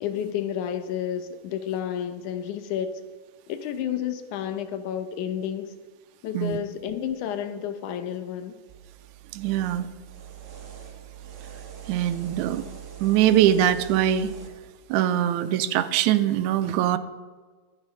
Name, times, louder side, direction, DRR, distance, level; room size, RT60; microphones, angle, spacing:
voice 1, 0.0-2.9 3.5-5.7 6.2-8.5, left 9 dB, 85° left, 9 dB, 2.3 m, -30 dB
sound 1, 8.7-14.5, right 9 dB, 35° right, 2.2 m, -43 dB
voice 2, 9.3-9.9 11.9-12.6 13.0-14.3 14.9-17.0, right 11 dB, 85° right, 10 dB, 2.0 m, -22 dB
11.5 x 10.0 x 5.6 m, 1.4 s
omnidirectional pair, 3.5 m